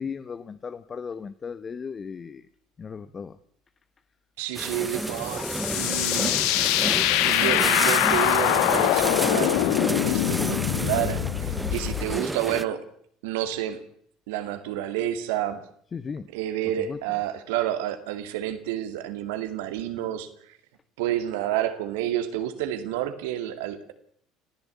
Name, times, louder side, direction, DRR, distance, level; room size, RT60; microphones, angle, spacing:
voice 1, 0.0-2.5 2.8-3.4 15.9-16.3 16.8-17.0, left 6 dB, 35° left, 13 dB, 1.1 m, -36 dB
voice 2, 4.4-5.5 5.7-6.4 7.2-9.6 10.0-12.9 13.2-13.8 14.3-15.6 16.3-20.6 21.0-23.9, right 12 dB, 75° right, 9 dB, 2.4 m, -29 dB
sound 1, 4.5-12.6, right 1 dB, 10° right, 1.0 m, -30 dB
sound 2, 5.0-12.2, left 15 dB, 70° left, 1.1 m, -24 dB
27.0 x 15.0 x 8.4 m, 0.64 s
hypercardioid pair, 65°, 0 cm